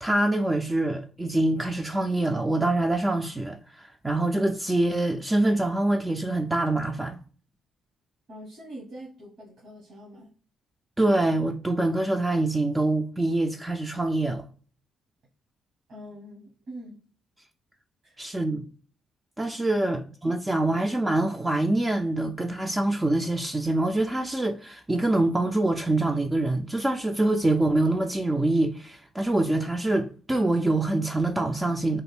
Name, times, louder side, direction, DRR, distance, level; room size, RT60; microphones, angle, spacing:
voice 1, 0.0-7.2 11.0-14.4 18.2-18.7 19.4-32.0, right 2 dB, 15° right, 0.4 m, -25 dB
voice 2, 8.3-10.3 15.9-17.0 18.0-18.2, right 1 dB, 65° right, 1.2 m, -44 dB
3.2 x 2.1 x 3.4 m
cardioid pair, 90°, 0 cm